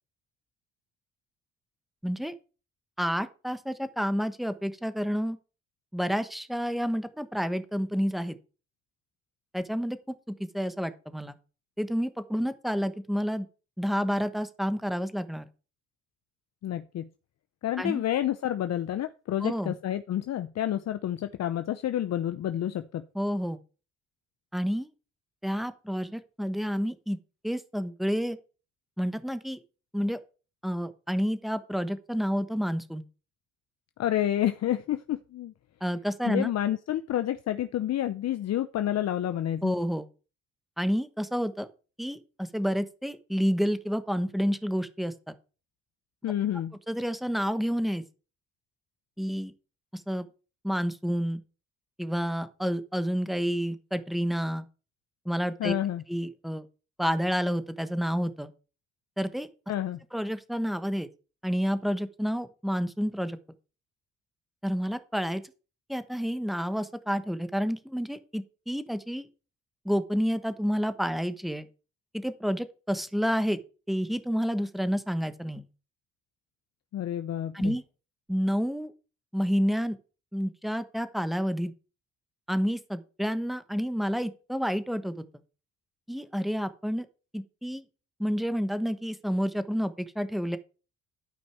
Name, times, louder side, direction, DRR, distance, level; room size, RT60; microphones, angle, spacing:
voice 1, 2.0-2.3 3.0-5.4 5.9-8.4 9.5-11.4 11.8-13.5 13.8-15.5 17.8-18.0 19.4-19.7 23.1-23.6 24.5-24.9 25.4-27.2 27.4-28.4 29.0-29.6 29.9-30.2 30.6-33.0 35.8-36.5 39.6-40.1 40.8-41.7 42.0-45.3 46.9-48.0 49.2-49.5 49.9-50.3 50.6-51.4 52.0-54.7 55.2-55.7 56.1-56.6 57.0-58.5 59.2-59.5 60.1-61.1 61.4-63.4 64.6-65.4 65.9-69.3 69.8-71.6 72.1-73.6 73.9-75.7 77.5-77.8 78.3-78.9 79.3-80.0 80.3-81.7 82.5-85.3 86.1-87.1 87.3-87.8 88.2-90.6, equal, ahead, 11 dB, 1.1 m, -29 dB
voice 2, 16.6-17.1 17.6-23.0 34.0-35.5 36.2-39.8 46.2-46.7 55.6-56.0 59.7-60.0 76.9-77.8, left 11 dB, 60° left, 10 dB, 0.7 m, -29 dB
12.5 x 5.3 x 4.7 m, 0.34 s
cardioid pair, 90°, 30 cm